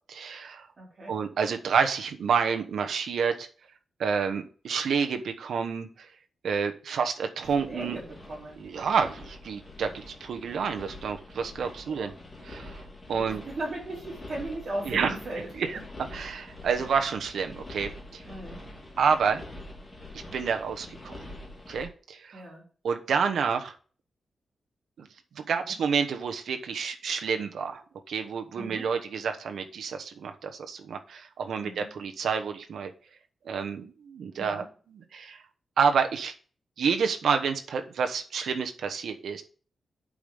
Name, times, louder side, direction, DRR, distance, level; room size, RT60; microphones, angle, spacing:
voice 1, 0.1-0.7 1.1-3.5 4.0-5.9 6.4-8.0 8.6-12.1 12.4-12.8 13.1-13.4 14.9-15.1 15.6-15.8 16.1-18.2 19.0-19.5 20.1-21.2 21.7-22.4 22.8-23.7 25.0-25.1 25.4-27.8 28.1-32.9 33.5-35.4 35.8-36.3 36.8-39.4, right 6 dB, 80° right, 6 dB, 1.0 m, -29 dB
voice 2, 0.8-1.1 7.6-8.6 11.9-12.2 13.2-15.5 15.7-15.8 18.2-18.6 22.3-22.6 25.5-25.7 28.6-28.9 31.6-31.9 34.4-34.7, right 1 dB, 40° right, -4 dB, 4.5 m, -38 dB
sound 1, 7.4-21.8, left 2 dB, 20° left, 2.9 m, -45 dB
8.6 x 5.2 x 5.5 m, 0.41 s
wide cardioid pair, 175°, 0 cm